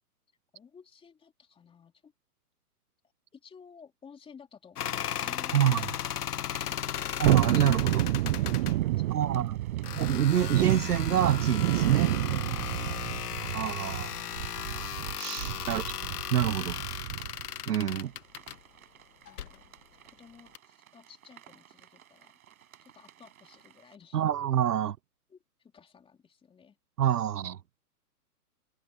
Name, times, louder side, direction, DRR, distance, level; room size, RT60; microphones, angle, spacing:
voice 1, 0.5-2.1 3.3-7.2 7.7-9.6 12.2-13.1 18.0-18.1 19.3-19.7 20.0-22.3 22.8-24.2 25.3-26.8, left 6 dB, 10° left, 3.3 m, -54 dB
sound 1, 4.8-8.8 9.8-18.6 19.3-19.6 20.6-20.7, left 10 dB, 80° left, 1.3 m, -36 dB
sound 2, 5.0-24.0, right 10 dB, 65° right, 6.8 m, -57 dB
voice 2, 5.5-5.9 7.2-8.0 9.1-9.6 9.9-12.1 13.5-14.1 15.2-15.8 16.3-16.8 17.7-18.1 24.1-25.0 27.0-27.6, right 10 dB, 90° right, 0.9 m, -26 dB
Thunderstorm, 7.2-17.5 17.8-17.9, right 16 dB, 40° right, 0.7 m, -30 dB
hypercardioid pair, 140°, 45 cm